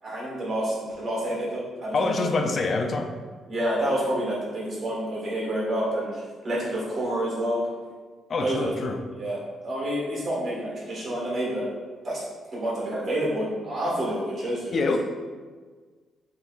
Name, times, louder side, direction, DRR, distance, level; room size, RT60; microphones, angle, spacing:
voice 1, 0.0-2.4 3.5-7.6 8.4-8.7 9.1-9.4 9.6-11.7 12.0-12.2 12.5-14.9, right 1 dB, 40° right, -5 dB, 1.4 m, -28 dB
voice 2, 1.9-3.1 8.3-9.0 14.7-15.0, left 3 dB, 40° left, 5 dB, 0.4 m, -25 dB
5.2 x 3.0 x 2.4 m, 1.5 s
cardioid pair, 150°, 0 cm